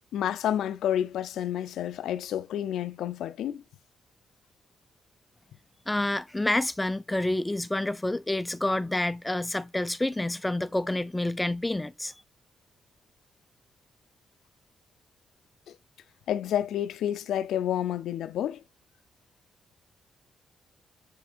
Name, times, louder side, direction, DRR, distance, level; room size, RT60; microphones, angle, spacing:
voice 1, 0.1-3.6 16.3-18.6, left 10 dB, 85° left, 0.5 m, -29 dB
voice 2, 5.9-12.1, left 1 dB, 10° left, 0.5 m, -28 dB
7.6 x 3.5 x 4.3 m
cardioid pair, 95°, 0 cm